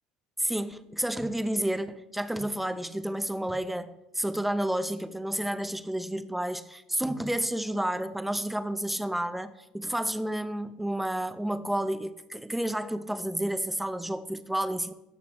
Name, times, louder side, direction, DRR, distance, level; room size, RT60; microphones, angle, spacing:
voice 1, 0.4-14.9, right 1 dB, 5° right, 0.7 m, -30 dB
14.5 x 6.0 x 3.1 m
hypercardioid pair, 70°, 3 cm